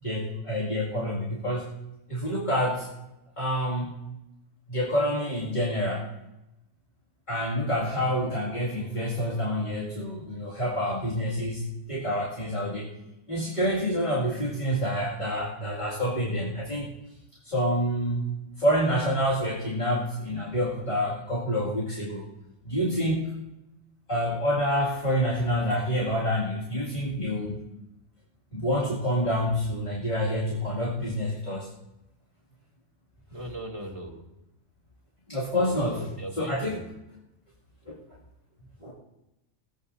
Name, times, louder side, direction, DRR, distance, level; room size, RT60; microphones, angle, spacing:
voice 1, 0.0-1.7 2.1-2.9 3.4-4.0 4.7-6.1 7.3-12.9 13.3-16.9 17.4-18.3 18.6-22.2 22.6-23.3 24.1-27.6 28.5-31.7 35.3-36.0 36.4-36.8 37.9-38.0 38.8-38.9, equal, 35° left, -6 dB, 2.4 m, -27 dB
voice 2, 33.3-34.2 35.9-36.9, right 1 dB, 25° right, -1 dB, 2.1 m, -38 dB
18.5 x 16.0 x 2.7 m, 0.95 s
omnidirectional pair, 1.3 m